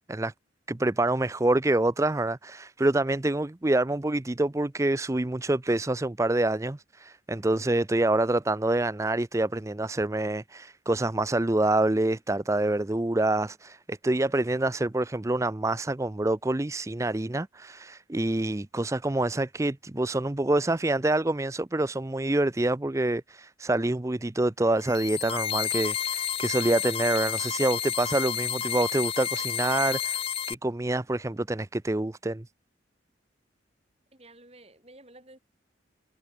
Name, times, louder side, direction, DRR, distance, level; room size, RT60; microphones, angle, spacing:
voice 1, 0.7-30.2 30.5-32.4, right 2 dB, 15° right, 0.5 m, -26 dB
sound 1, 24.8-30.5, left 9 dB, 30° left, 0.8 m, -30 dB
voice 2, 34.1-35.4, right 2 dB, 35° right, 6.6 m, -52 dB
head